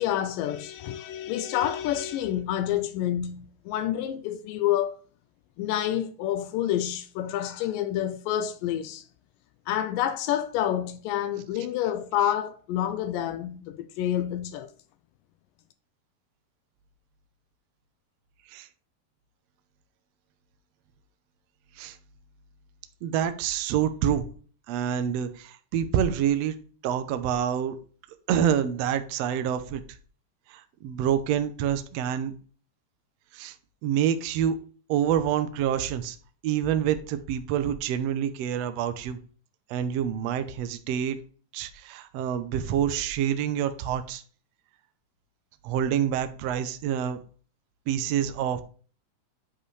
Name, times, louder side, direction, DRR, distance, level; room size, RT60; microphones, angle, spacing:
voice 1, 0.0-5.0 5.6-9.0 9.7-14.7, left 11 dB, 85° left, 2.3 m, -28 dB
voice 2, 23.0-24.3 24.7-26.5 26.8-27.8 28.3-29.8 30.5-32.3 33.3-33.5 33.8-34.5 34.9-36.2 36.4-39.2 39.7-41.2 41.5-44.2 45.6-47.2 47.9-48.6, right 9 dB, 75° right, 1.5 m, -27 dB
9.9 x 5.5 x 3.2 m
omnidirectional pair, 3.9 m